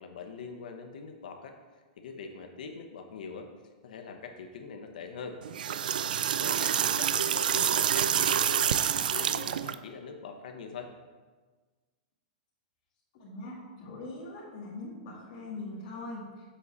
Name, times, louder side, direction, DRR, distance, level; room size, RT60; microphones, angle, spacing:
voice 1, 0.0-1.6 2.0-3.5 3.8-5.4 6.4-10.9, left 5 dB, 70° left, 5 dB, 0.9 m, -43 dB
sound 1, 5.4-9.7, right 9 dB, 85° right, 0.4 m, -27 dB
voice 2, 13.1-16.4, left 2 dB, 40° left, -8 dB, 1.9 m, -41 dB
7.4 x 4.1 x 6.8 m, 1.3 s
supercardioid pair, 165°, 5 cm